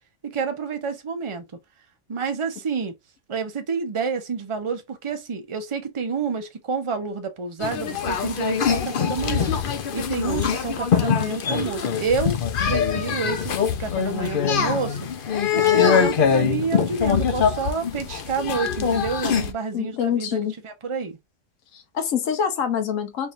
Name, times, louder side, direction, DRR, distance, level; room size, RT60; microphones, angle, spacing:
voice 1, 0.2-1.5 2.1-2.9 3.3-9.6 9.9-12.4 12.7-15.0 15.5-20.4 20.6-21.2, right 5 dB, 30° right, 0.6 m, -28 dB
sound 1, 7.6-19.5, left 7 dB, 55° left, 0.7 m, -23 dB
voice 2, 19.7-20.5 21.7-23.3, left 8 dB, 80° left, 1.2 m, -25 dB
4.4 x 3.2 x 2.5 m
omnidirectional pair, 1.4 m